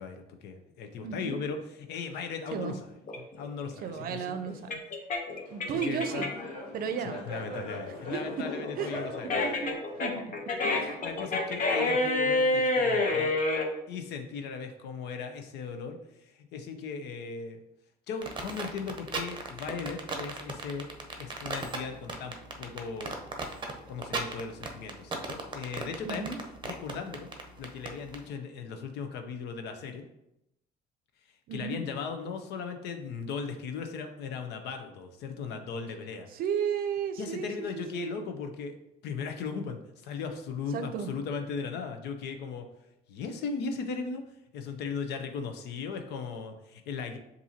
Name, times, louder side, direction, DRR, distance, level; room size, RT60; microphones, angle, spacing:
voice 1, 0.0-2.8 3.2-4.4 5.8-6.3 7.2-9.3 10.7-13.4 13.9-17.6 18.1-23.2 23.9-26.3 26.6-27.3 27.6-30.0 31.5-36.3 37.2-38.8 39.0-42.7 43.1-44.2 44.5-47.2, left 5 dB, 80° left, 6 dB, 0.7 m, -37 dB
voice 2, 1.0-1.4 2.5-2.8 3.8-4.8 5.5-6.3 6.7-7.2 8.1-8.2 8.8-8.9 9.4-10.2 10.6-11.0 26.0-26.4 31.5-31.8 36.3-38.2 40.7-41.1, right 7 dB, 60° right, 8 dB, 0.5 m, -34 dB
sound 1, 3.1-6.5 6.9-13.7, left 2 dB, 50° left, 0.8 m, -28 dB
Laughter, 5.5-11.3, equal, 30° left, 1.5 m, -43 dB
sound 2, 18.2-28.2, right 4 dB, 30° right, 0.7 m, -36 dB
7.0 x 2.7 x 2.8 m, 0.84 s
cardioid pair, 110°, 17 cm